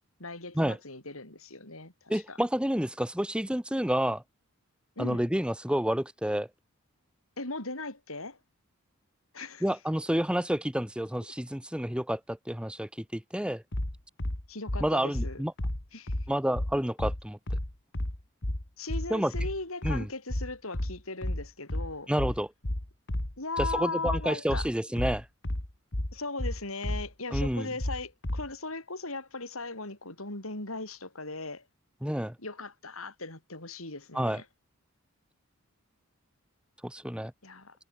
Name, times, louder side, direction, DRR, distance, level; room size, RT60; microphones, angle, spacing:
voice 1, 0.2-2.4 5.0-5.3 7.4-8.4 9.3-9.7 14.5-15.4 15.9-16.1 18.8-22.1 23.4-24.7 26.1-31.6 32.4-34.4 37.4-37.7, left 3 dB, 75° left, 7.4 m, -38 dB
voice 2, 2.1-4.2 5.0-6.5 9.6-13.6 14.8-15.5 16.3-17.4 19.1-19.3 19.8-20.1 22.1-22.5 23.6-25.2 27.3-27.7 32.0-32.3 34.1-34.4 36.8-37.3, equal, 5° right, 1.1 m, -29 dB
sound 1, 13.7-28.5, left 1 dB, 55° left, 2.4 m, -32 dB
head